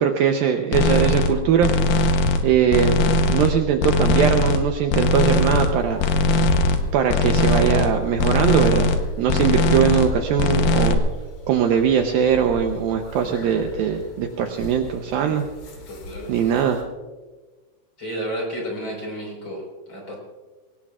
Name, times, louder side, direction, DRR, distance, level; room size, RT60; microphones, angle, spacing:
voice 1, 0.0-1.7 2.4-3.0 3.3-6.0 6.9-8.9 9.2-11.0 11.5-15.4 16.3-16.8, right 8 dB, 90° right, 4 dB, 2.0 m, -21 dB
sound 1, 0.7-1.3 1.6-2.4 2.7-3.5 3.8-4.6 4.9-5.7 6.0-6.8 7.1-7.9 8.2-9.0 9.3-10.1 10.4-10.9, left 2 dB, 80° left, 1.9 m, -19 dB
sound 2, 5.0-16.8, left 1 dB, 55° left, 3.2 m, -39 dB
voice 2, 15.9-16.3 18.0-20.1, equal, 25° left, -1 dB, 4.8 m, -31 dB
23.5 x 19.0 x 2.4 m, 1.3 s
omnidirectional pair, 5.3 m